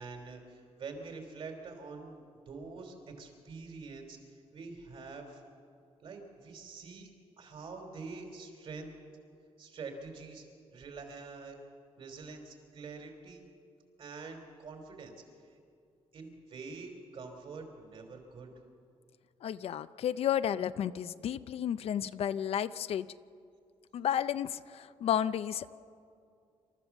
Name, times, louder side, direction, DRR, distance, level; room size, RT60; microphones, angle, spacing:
voice 1, 0.0-5.4 6.0-7.1 7.4-8.9 9.6-10.4 10.7-11.6 12.0-13.4 14.0-15.1 15.5-15.6 16.1-18.5, right 4 dB, 55° right, 4 dB, 3.4 m, -46 dB
voice 2, 19.4-23.1 23.9-25.8, left 9 dB, 65° left, 14 dB, 0.5 m, -32 dB
27.5 x 13.5 x 7.2 m, 2.4 s
wide cardioid pair, 170°, 11 cm